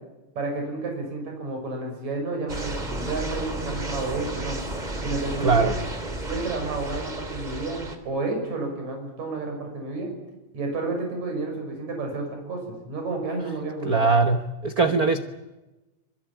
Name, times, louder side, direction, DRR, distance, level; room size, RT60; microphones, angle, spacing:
voice 1, 0.4-4.6 5.0-5.7 6.3-10.1 10.5-14.1 14.8-15.1, right 3 dB, 60° right, 2 dB, 7.7 m, -31 dB
sound 1, 2.5-8.0, right 2 dB, 15° right, 2.5 m, -32 dB
voice 2, 5.4-5.8 13.9-15.2, right 4 dB, 80° right, 8 dB, 0.8 m, -21 dB
25.5 x 23.0 x 8.9 m, 1.1 s
omnidirectional pair, 3.6 m